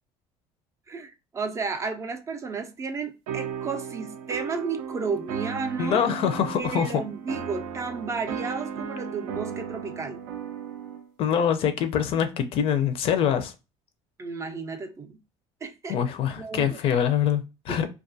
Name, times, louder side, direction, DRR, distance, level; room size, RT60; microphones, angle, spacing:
voice 1, 0.9-6.1 6.6-10.2 14.2-15.2 15.6-16.0 16.4-16.8 17.7-17.8, right 4 dB, 25° right, 0.4 m, -33 dB
sound 1, 3.3-11.1, right 7 dB, 90° right, 0.4 m, -35 dB
voice 2, 5.8-7.0 11.2-13.5 15.9-17.9, left 8 dB, 55° left, 0.4 m, -24 dB
2.4 x 2.3 x 2.5 m
cardioid pair, 125°, 12 cm